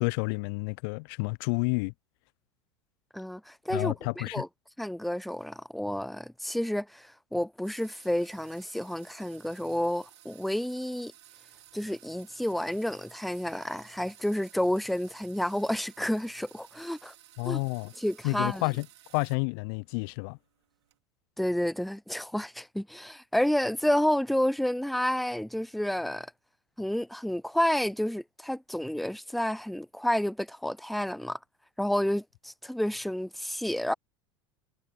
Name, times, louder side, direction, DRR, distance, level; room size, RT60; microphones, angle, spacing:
voice 1, 0.0-1.9 3.7-4.4 17.4-17.9 18.2-18.9 19.1-20.4, left 33 dB, 55° left, 0.7 m, -30 dB
voice 2, 3.1-4.5 4.8-11.1 11.7-17.1 17.4-17.6 18.0-18.6 21.4-26.3 26.8-31.4 31.8-33.9, left 1 dB, ahead, 0.3 m, -30 dB
sound 1, 7.6-19.5 19.9-20.9, right 12 dB, 70° right, 3.9 m, -56 dB
figure-of-eight pair, 80°, 15 cm